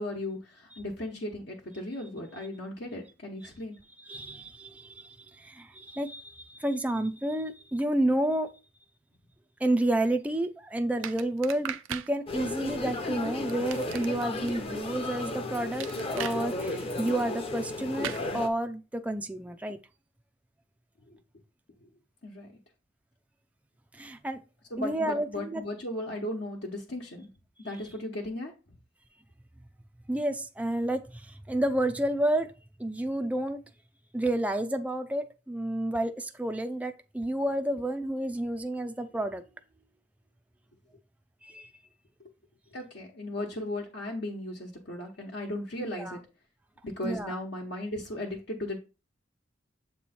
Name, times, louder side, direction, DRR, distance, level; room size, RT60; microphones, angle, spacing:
voice 1, 0.0-3.8 21.1-21.2 21.8-21.9 22.2-22.5 24.7-27.3 27.6-28.5 42.7-46.2 46.8-48.8, left 1 dB, 60° left, 1.1 m, -36 dB
voice 2, 4.1-8.5 9.6-19.8 23.9-24.4 24.8-25.6 30.1-32.5 32.8-33.6 34.1-39.5 41.4-41.7 46.0-46.2 47.0-47.3, right 1 dB, 10° right, 0.4 m, -30 dB
sound 1, 11.0-12.1 13.5-14.5 15.8-16.4 18.0-18.2, right 9 dB, 85° right, 0.5 m, -37 dB
sound 2, 12.3-18.5, left 2 dB, 30° left, 0.8 m, -34 dB
7.6 x 3.1 x 4.3 m
head